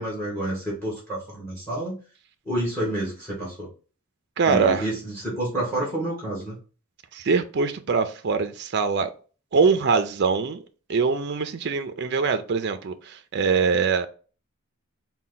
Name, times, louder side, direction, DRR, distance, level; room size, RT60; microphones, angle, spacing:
voice 1, 0.0-2.0 2.4-3.7 4.5-6.6, right 1 dB, 10° left, 1.4 m, -29 dB
voice 2, 4.4-4.9 7.1-9.1 9.5-10.6 10.9-14.1, right 5 dB, 50° right, 0.4 m, -23 dB
4.3 x 2.2 x 3.9 m
head